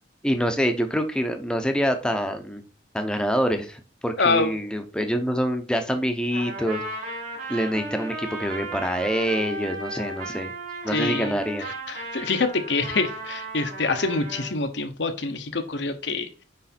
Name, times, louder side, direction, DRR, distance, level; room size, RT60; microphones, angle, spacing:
voice 1, 0.2-2.6 2.9-6.8 7.5-10.5 10.8-11.7, equal, 5° left, 6 dB, 0.9 m, -26 dB
voice 2, 4.2-4.5 10.9-11.3 11.9-16.3, left 3 dB, 65° left, 7 dB, 1.0 m, -25 dB
Trumpet, 6.3-14.5, right 2 dB, 50° right, 4.2 m, -35 dB
9.4 x 3.4 x 4.3 m, 0.35 s
head